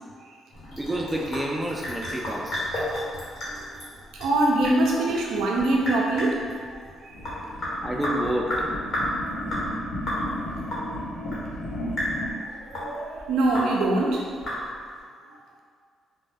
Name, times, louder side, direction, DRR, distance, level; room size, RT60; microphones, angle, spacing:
Sink (filling or washing) / Drip, 0.5-15.0, left 1 dB, 55° left, 1.0 m, -33 dB
voice 1, 0.8-2.5 7.8-8.7, right 1 dB, 10° right, -2 dB, 0.3 m, -29 dB
voice 2, 3.4-3.9 4.2-7.5 10.9-11.0 12.4-14.2 15.3-15.4, right 2 dB, 85° right, -1 dB, 0.4 m, -25 dB
sound 1, 7.1-12.3, left 1 dB, 85° left, 0.8 m, -34 dB
2.1 x 2.0 x 3.3 m, 2.1 s
cardioid pair, 90°, 0 cm